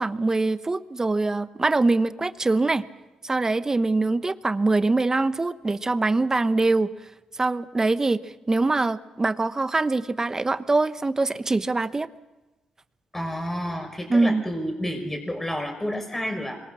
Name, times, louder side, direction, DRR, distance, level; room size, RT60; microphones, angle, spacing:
voice 1, 0.0-2.8 3.2-6.9 7.4-8.2 8.5-12.1 14.1-14.4, right 3 dB, 25° right, 13 dB, 1.0 m, -23 dB
voice 2, 13.1-16.6, equal, 15° left, 3 dB, 5.7 m, -30 dB
26.0 x 23.0 x 6.4 m, 1.1 s
cardioid pair, 65°, 2 cm